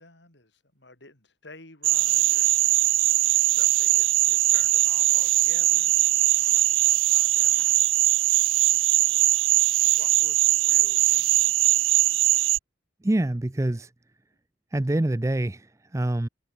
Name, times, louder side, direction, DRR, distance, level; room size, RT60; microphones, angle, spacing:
voice 1, 0.0-3.0 3.3-7.6 9.0-9.5 9.8-12.4, left 2 dB, 65° left, 6.5 m, -51 dB
sound 1, 1.8-12.6, right 17 dB, 85° right, 0.4 m, -21 dB
voice 2, 13.0-13.9 14.7-16.3, right 1 dB, 15° right, 0.4 m, -26 dB
head